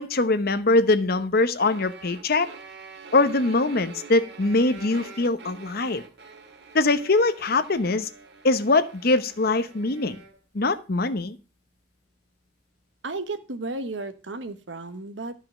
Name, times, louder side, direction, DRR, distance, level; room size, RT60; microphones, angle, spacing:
voice 1, 0.0-2.5 3.1-6.0 6.7-8.1 8.4-10.2 10.5-11.4, left 2 dB, 55° left, 12 dB, 0.9 m, -22 dB
sound 1, 1.6-10.4, right 4 dB, 65° right, 1.8 m, -46 dB
voice 2, 13.0-15.3, right 2 dB, 85° right, 10 dB, 1.2 m, -33 dB
12.5 x 5.7 x 6.0 m, 0.33 s
head